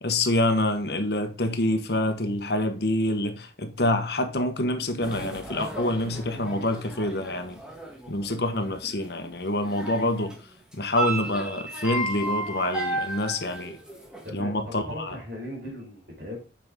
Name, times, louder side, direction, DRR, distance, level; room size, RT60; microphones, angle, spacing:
voice 1, 0.0-7.6 8.1-10.3 10.7-13.8 14.3-15.2, left 1 dB, 65° left, 1.2 m, -26 dB
sound 1, 5.0-10.4 10.7-14.2, right 2 dB, 5° right, 1.4 m, -34 dB
voice 2, 14.2-16.4, left 1 dB, 55° right, 4.4 m, -38 dB
8.1 x 5.7 x 3.7 m
head